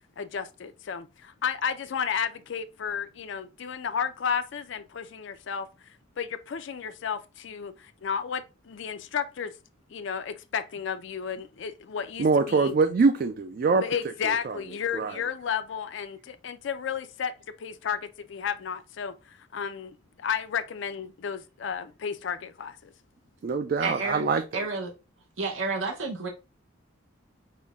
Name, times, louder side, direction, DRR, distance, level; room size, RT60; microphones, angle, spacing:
voice 1, 0.2-5.7 6.2-9.5 9.9-12.8 13.7-17.3 17.6-22.9, left 7 dB, 65° left, 0.4 m, -33 dB
voice 2, 12.2-13.8 14.5-14.6 14.9-15.1 23.4-24.4, right 4 dB, 45° right, 0.3 m, -23 dB
voice 3, 23.8-24.2 24.5-24.9 25.4-26.3, right 3 dB, 75° right, 0.8 m, -30 dB
5.5 x 2.1 x 3.4 m
head